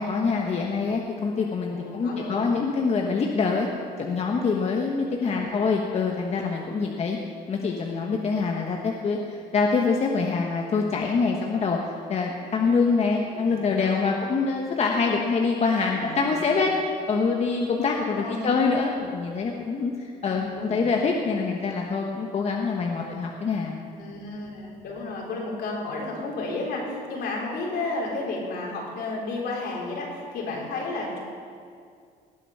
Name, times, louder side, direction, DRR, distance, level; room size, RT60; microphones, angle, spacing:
voice 1, 0.0-3.7 4.0-7.2 7.5-23.8, left 4 dB, 40° left, 0 dB, 1.3 m, -25 dB
voice 2, 1.7-2.5 5.3-5.7 13.0-14.3 15.8-16.6 18.1-18.6 20.3-20.8 23.9-31.2, left 2 dB, 75° left, -2 dB, 3.9 m, -33 dB
18.5 x 8.2 x 5.7 m, 2.3 s
cardioid pair, 110°, 17 cm